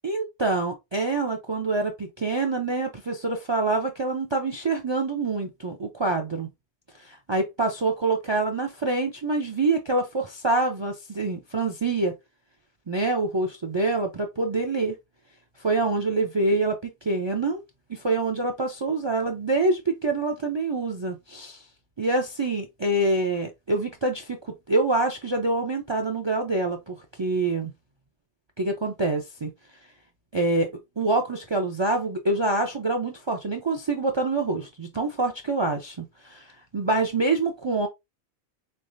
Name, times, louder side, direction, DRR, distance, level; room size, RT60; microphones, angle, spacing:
voice 1, 0.0-6.5 7.0-12.1 12.9-15.0 15.6-17.6 17.9-21.6 22.0-27.7 28.6-29.5 30.3-30.7 31.0-37.9, right 2 dB, 40° right, 0.4 m, -26 dB
3.9 x 3.3 x 2.6 m
omnidirectional pair, 1.1 m